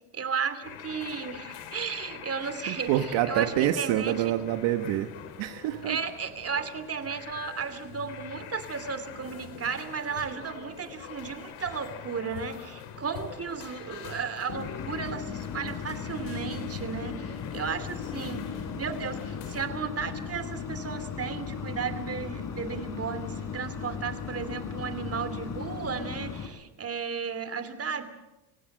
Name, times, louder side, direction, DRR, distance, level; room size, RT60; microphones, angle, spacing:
voice 1, 0.1-2.9 3.3-4.1 5.9-18.5 18.8-28.0, right 6 dB, 30° right, 11 dB, 2.8 m, -34 dB
sound 1, 0.6-19.7, left 9 dB, 75° left, 3.3 m, -44 dB
voice 2, 2.4-5.1 5.4-6.0, right 12 dB, 70° right, 8 dB, 1.5 m, -27 dB
sound 2, 14.5-26.5, left 7 dB, 40° left, 3.8 m, -37 dB
26.0 x 17.0 x 7.6 m, 1.0 s
supercardioid pair, 100°, 48 cm